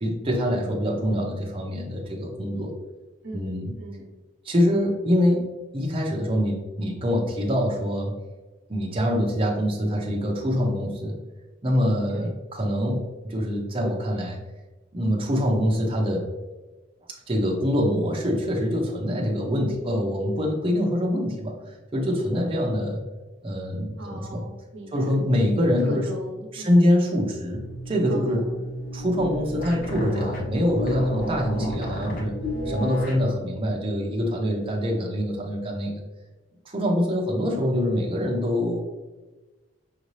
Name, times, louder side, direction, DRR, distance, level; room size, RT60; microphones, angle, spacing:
voice 1, 0.0-2.8 3.3-3.7 4.4-8.1 8.7-11.2 11.6-14.4 14.9-16.3 17.3-21.5 21.9-23.0 23.4-24.4 24.9-26.1 26.5-28.4 28.9-32.4 32.7-36.0 36.6-38.8, equal, 30° right, -1 dB, 0.7 m, -24 dB
voice 2, 3.2-4.1 12.1-12.3 24.0-25.1 25.8-26.8 28.1-28.6, right 2 dB, 75° right, 1 dB, 0.8 m, -38 dB
sound 1, 27.5-33.3, equal, 50° left, 0.8 m, -32 dB
5.6 x 2.7 x 3.1 m, 1.2 s
head